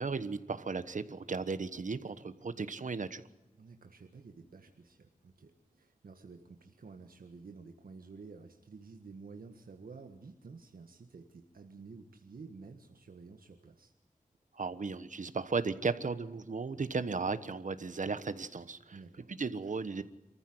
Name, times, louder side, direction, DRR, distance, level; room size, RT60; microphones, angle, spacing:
voice 1, 0.0-3.2 14.5-19.0 19.3-20.0, right 4 dB, 60° right, 12 dB, 1.2 m, -35 dB
voice 2, 3.5-13.9 16.7-17.1 18.9-19.3, right 4 dB, 90° right, 4 dB, 1.6 m, -51 dB
26.5 x 14.5 x 7.9 m, 1.0 s
wide cardioid pair, 90°, 15 cm